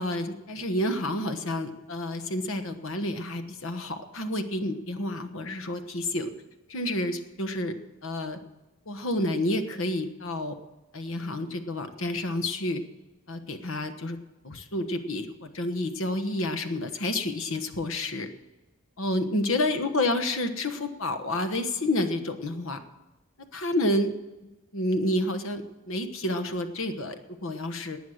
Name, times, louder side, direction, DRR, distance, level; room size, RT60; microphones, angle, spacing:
voice 1, 0.0-6.3 6.7-7.7 8.0-8.4 8.9-10.6 10.9-12.8 13.3-14.2 14.4-18.3 19.0-22.8 23.4-24.1 24.7-28.0, left 1 dB, 65° left, 8 dB, 1.2 m, -29 dB
19.0 x 9.3 x 6.5 m, 1.1 s
head